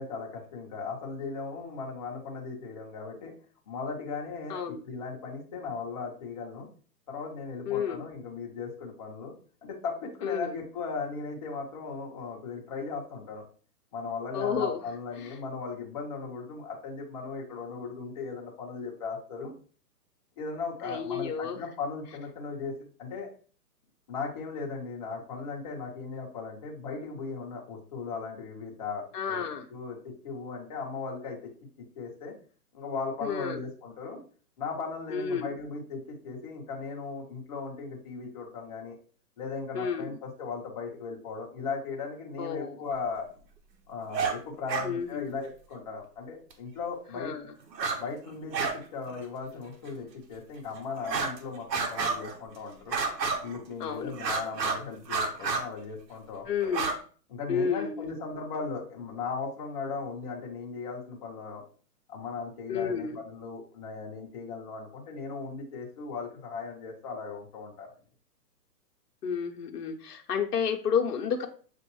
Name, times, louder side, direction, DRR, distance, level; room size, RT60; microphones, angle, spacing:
voice 1, 0.0-3.3 3.7-6.7 7.1-9.3 9.6-13.4 13.9-19.5 20.4-22.7 23.0-23.3 24.1-29.4 29.7-30.0 30.2-31.5 31.8-32.3 32.7-34.2 34.6-38.9 39.4-43.3 43.9-47.4 48.0-53.0 53.4-56.8 57.3-61.6 62.1-67.9, left 4 dB, 25° left, -2 dB, 0.8 m, -37 dB
voice 2, 7.7-8.0 10.2-10.5 14.3-14.8 15.2-15.3 20.8-21.6 29.1-29.7 33.2-33.6 35.1-35.5 39.7-40.1 42.4-42.8 44.8-45.3 47.1-47.5 53.8-54.1 56.5-56.9 57.5-58.2 62.7-63.2 69.2-71.5, left 7 dB, 70° left, 3 dB, 0.8 m, -31 dB
sound 1, 44.1-44.4 44.7-44.9 46.5-46.6 47.7-48.0 48.3-48.8 49.1-49.2 49.9-50.0 51.0-51.4 51.7-52.4 52.9-53.6 54.1-54.8 55.1-55.6 56.6-57.0, right 4 dB, 90° right, 1.1 m, -30 dB
6.9 x 2.5 x 3.0 m, 0.41 s
hypercardioid pair, 160°, 49 cm